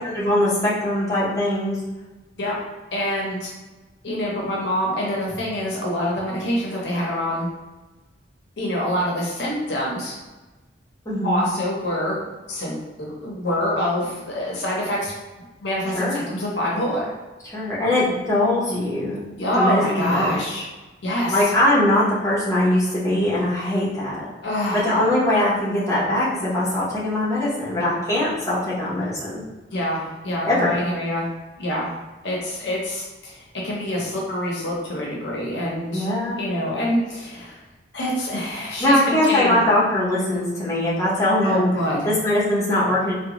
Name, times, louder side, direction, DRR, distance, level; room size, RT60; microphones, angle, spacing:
voice 1, 0.0-1.8 11.0-11.4 15.9-16.2 17.4-19.2 19.6-20.4 21.3-24.2 24.7-29.4 30.4-30.7 35.9-36.4 38.8-41.7 42.0-43.1, left 1 dB, 15° left, -8 dB, 1.0 m, -21 dB
voice 2, 2.9-3.5 4.0-7.5 8.6-10.1 11.2-12.2 12.5-15.1 15.6-17.1 19.4-20.6 21.0-21.5 24.4-25.0 29.7-31.3 31.6-31.9 32.2-36.1 36.4-37.6 37.9-39.6 41.4-42.1, equal, 65° left, -3 dB, 0.7 m, -25 dB
3.5 x 2.2 x 2.9 m, 1.2 s
head